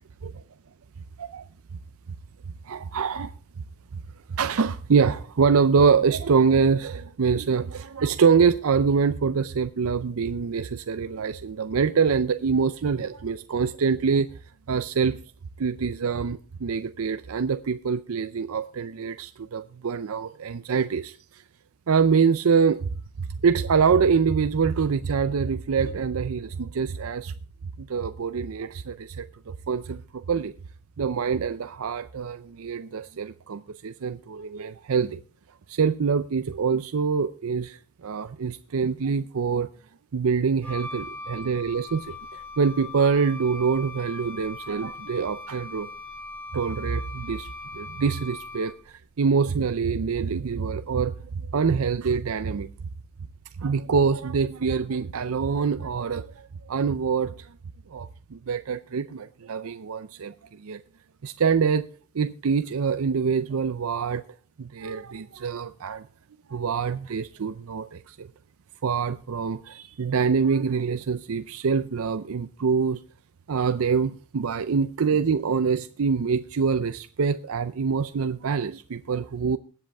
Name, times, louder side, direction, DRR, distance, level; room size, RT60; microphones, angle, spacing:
voice 1, 2.6-3.3 3.9-4.0 4.3-14.3 14.7-15.2 15.6-21.4 21.9-22.9 23.4-27.3 27.8-30.5 31.0-35.2 35.7-39.7 40.1-45.9 46.5-47.5 47.7-52.7 53.6-57.5 57.9-60.8 61.2-61.9 62.1-64.2 64.6-66.1 66.5-68.3 68.8-73.0 73.5-79.6, right 5 dB, 70° right, 12 dB, 0.5 m, -25 dB
Wind instrument woodwind instrument, 40.6-48.9, left 2 dB, 5° left, 1.9 m, -40 dB
20.0 x 7.9 x 3.4 m, 0.38 s
head